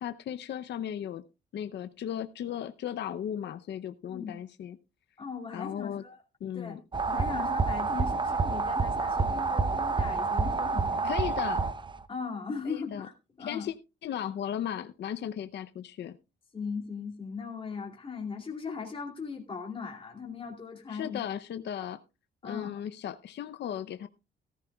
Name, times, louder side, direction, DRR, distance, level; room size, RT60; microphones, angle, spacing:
voice 1, 0.0-1.2 1.5-4.8 5.5-6.0 6.4-6.8 11.0-11.6 12.7-13.1 13.4-13.7 14.0-16.2 20.9-22.0 22.4-24.1, left 10 dB, 60° left, 10 dB, 0.7 m, -36 dB
voice 2, 5.2-6.2 6.5-6.8 7.0-11.1 12.1-13.7 16.5-21.2 22.4-22.8, left 5 dB, 25° left, -1 dB, 2.5 m, -38 dB
sound 1, 6.9-12.0, right 4 dB, 25° right, 0.7 m, -28 dB
14.5 x 14.0 x 2.3 m, 0.28 s
cardioid pair, 90°, 20 cm